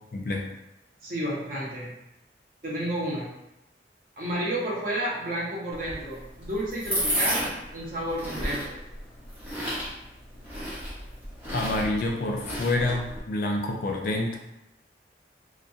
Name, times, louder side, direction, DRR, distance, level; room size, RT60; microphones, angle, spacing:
voice 1, 0.1-0.5 11.5-14.4, left 2 dB, 50° left, 1 dB, 0.4 m, -27 dB
voice 2, 1.0-1.9 2.6-3.3 4.2-7.4 7.7-8.8, right 1 dB, 50° right, -5 dB, 0.7 m, -31 dB
sound 1, 5.7-13.2, equal, 10° right, 0.8 m, -33 dB
2.3 x 2.2 x 2.6 m, 0.88 s
head